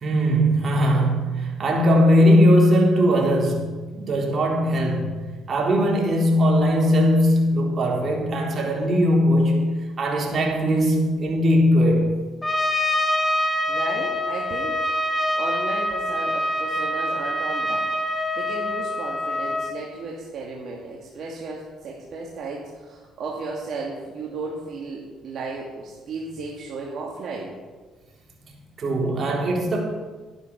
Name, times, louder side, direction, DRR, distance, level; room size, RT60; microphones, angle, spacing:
voice 1, 0.0-12.2 28.5-29.8, equal, 45° right, -1 dB, 3.7 m, -20 dB
Trumpet, 12.4-19.8, left 1 dB, 15° left, 1.6 m, -25 dB
voice 2, 13.7-14.8 15.3-27.6, right 3 dB, 60° right, -3 dB, 2.4 m, -34 dB
12.0 x 11.0 x 6.0 m, 1.4 s
cardioid pair, 85°, 0 cm